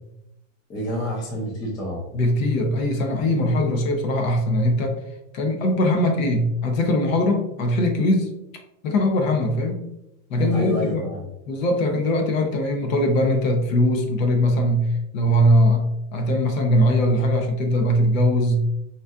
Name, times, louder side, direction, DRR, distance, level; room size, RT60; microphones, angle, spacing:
voice 1, 0.7-2.0 10.4-11.3, left 1 dB, 10° left, -2 dB, 0.3 m, -28 dB
voice 2, 2.1-5.0 5.3-8.3 8.8-9.8 10.3-11.1 11.5-14.8 15.1-18.7, left 1 dB, 80° left, 3 dB, 0.9 m, -21 dB
4.0 x 2.6 x 2.3 m, 0.86 s
supercardioid pair, 160°, 39 cm